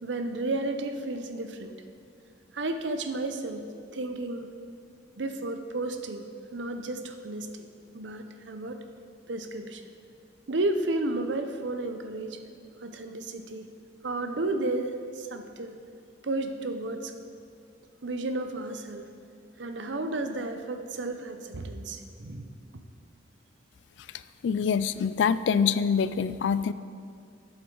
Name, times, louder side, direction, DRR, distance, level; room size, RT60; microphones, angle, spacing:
voice 1, 0.0-1.7 2.5-4.5 5.2-6.3 6.5-7.5 7.9-8.8 9.3-9.8 10.5-12.4 12.8-13.7 14.0-15.8 16.2-17.1 18.0-19.1 19.6-22.5, right 2 dB, 75° right, 7 dB, 0.7 m, -32 dB
voice 2, 24.4-26.7, left 6 dB, 75° left, 15 dB, 0.3 m, -25 dB
11.5 x 7.9 x 3.8 m, 2.3 s
head